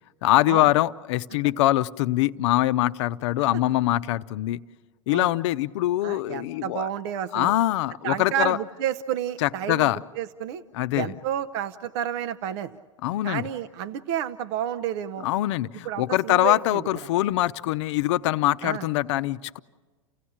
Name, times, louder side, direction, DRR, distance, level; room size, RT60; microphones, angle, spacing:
voice 1, 0.2-4.6 5.1-6.9 7.3-8.6 9.4-10.0 10.7-11.1 13.0-13.4 15.2-19.6, left 15 dB, 65° left, 14 dB, 0.7 m, -23 dB
voice 2, 6.0-7.5 8.0-9.9 10.2-10.6 11.0-12.8 13.2-15.3 15.8-16.8 18.6-18.8, right 10 dB, 60° right, 9 dB, 0.7 m, -30 dB
29.5 x 16.0 x 8.7 m, 1.4 s
hypercardioid pair, 105°, 16 cm